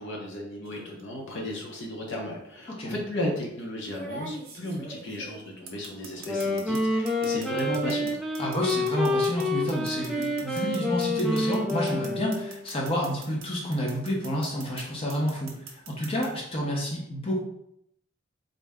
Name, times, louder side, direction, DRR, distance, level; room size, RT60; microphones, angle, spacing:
voice 1, 0.0-8.1, left 1 dB, 65° left, -1 dB, 0.8 m, -34 dB
sound 1, 0.6-1.0 2.2-2.3 3.8-6.8 7.1-13.5 13.7-14.8 15.1-16.3, right 3 dB, 45° right, 0.7 m, -42 dB
Wind instrument woodwind instrument, 6.1-12.7, left 1 dB, ahead, 0.4 m, -28 dB
voice 2, 8.4-17.4, equal, 30° left, -3 dB, 0.8 m, -29 dB
4.0 x 2.1 x 3.5 m, 0.75 s
head